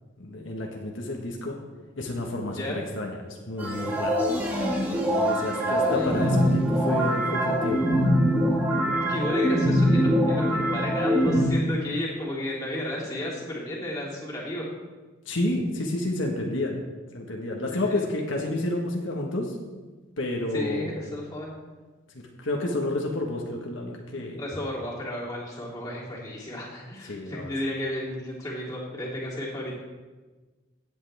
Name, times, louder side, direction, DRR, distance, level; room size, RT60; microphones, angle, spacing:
voice 1, 0.2-1.6 2.0-2.6 2.9-4.2 5.1-7.8 15.2-16.8 17.1-19.6 20.2-21.0 22.4-24.4 27.0-27.5, left 1 dB, 70° left, 0 dB, 1.4 m, -30 dB
voice 2, 2.5-2.8 5.7-6.3 9.1-14.7 20.5-21.5 24.3-29.7, left 1 dB, 20° left, -6 dB, 3.0 m, -33 dB
sound 1, 3.6-11.5, equal, 10° right, 1.8 m, -23 dB
16.0 x 8.7 x 3.5 m, 1.3 s
head